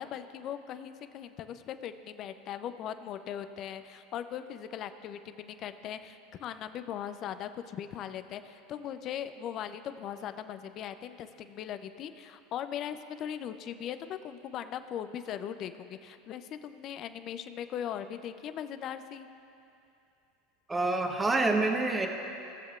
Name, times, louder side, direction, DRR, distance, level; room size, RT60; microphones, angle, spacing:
voice 1, 0.0-19.3, left 9 dB, 45° left, 11 dB, 0.5 m, -39 dB
voice 2, 20.7-22.1, right 2 dB, 15° right, 3 dB, 1.0 m, -27 dB
18.5 x 7.2 x 2.4 m, 2.7 s
hypercardioid pair, 90°, 0 cm